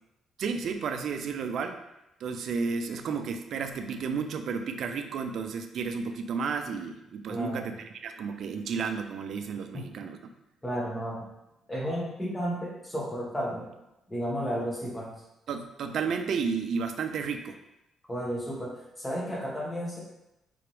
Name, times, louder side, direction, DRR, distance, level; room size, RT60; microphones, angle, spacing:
voice 1, 0.4-1.8 2.2-10.2 15.5-17.6, right 5 dB, 65° right, 7 dB, 0.4 m, -32 dB
voice 2, 7.3-7.7 9.7-9.9 10.6-11.3 11.7-13.7 14.1-15.1 18.1-20.0, equal, 15° left, -3 dB, 1.3 m, -33 dB
4.7 x 3.4 x 3.3 m, 0.89 s
cardioid pair, 90°, 0 cm